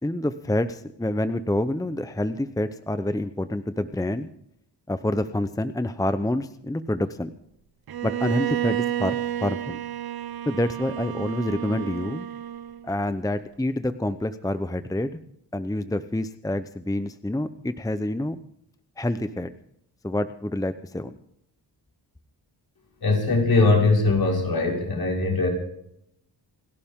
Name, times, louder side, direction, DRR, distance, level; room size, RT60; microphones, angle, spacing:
voice 1, 0.0-4.3 4.9-7.3 8.0-9.8 10.5-12.3 12.8-15.1 15.5-18.4 19.0-19.5 20.0-21.2, left 1 dB, 10° left, 11 dB, 0.8 m, -27 dB
Bowed string instrument, 7.9-12.9, right 12 dB, 60° right, 0.8 m, -30 dB
voice 2, 23.0-25.5, left 3 dB, 55° left, 0 dB, 6.0 m, -21 dB
29.0 x 11.5 x 3.7 m, 0.75 s
wide cardioid pair, 105°, 42 cm